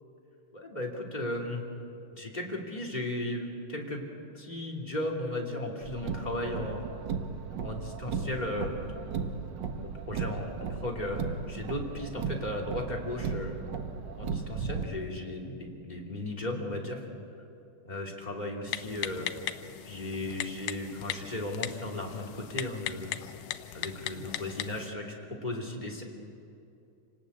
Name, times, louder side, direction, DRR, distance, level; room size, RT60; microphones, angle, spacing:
voice 1, 0.5-1.6 2.1-4.0 4.3-6.9 7.6-8.9 9.7-13.6 14.1-17.0 17.8-19.3 19.8-23.2 23.7-25.1 25.4-26.0, left 1 dB, 15° left, -1 dB, 2.6 m, -35 dB
Car, 5.8-14.8, right 6 dB, 60° right, 1.2 m, -36 dB
Typing, 18.7-24.9, left 13 dB, 90° left, 2.3 m, -38 dB
28.0 x 19.0 x 8.5 m, 2.7 s
omnidirectional pair, 3.6 m